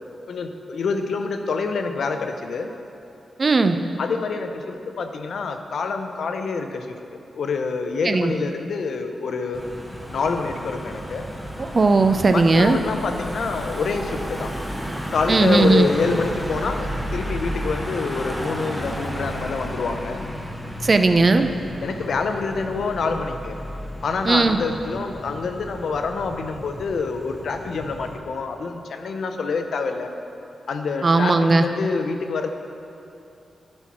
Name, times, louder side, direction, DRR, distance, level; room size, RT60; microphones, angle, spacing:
voice 1, 0.3-2.7 4.0-9.6 10.1-11.3 12.3-14.5 15.1-20.2 21.8-23.6 24.0-30.1 30.7-32.6, left 4 dB, 75° left, 6 dB, 0.6 m, -26 dB
voice 2, 3.4-3.8 8.0-8.3 11.6-12.8 15.3-15.9 20.8-21.5 24.3-24.6 31.0-31.6, right 3 dB, 35° right, 8 dB, 0.4 m, -17 dB
Car passing by / Engine, 9.5-28.2, equal, ahead, 0.8 m, -33 dB
11.0 x 4.4 x 6.0 m, 2.8 s
wide cardioid pair, 120°, 0 cm